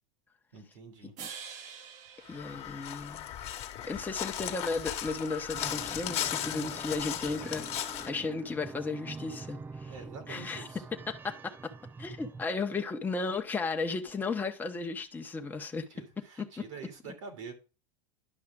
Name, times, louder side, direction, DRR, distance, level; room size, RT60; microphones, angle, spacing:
voice 1, 0.5-1.1 9.9-10.8 15.9-17.5, right 5 dB, 75° right, 2.8 m, -46 dB
sound 1, 1.2-3.5, right 7 dB, 45° right, 1.2 m, -47 dB
Crow, 2.3-8.1, left 11 dB, 40° left, 1.4 m, -36 dB
voice 2, 2.3-3.3 3.9-9.9 10.3-10.7 11.1-11.7 12.0-15.9 16.4-16.5, left 4 dB, 10° left, 1.0 m, -35 dB
sound 2, 5.5-12.4, right 4 dB, 10° right, 0.4 m, -45 dB
11.0 x 5.6 x 3.7 m
supercardioid pair, 120°, 16 cm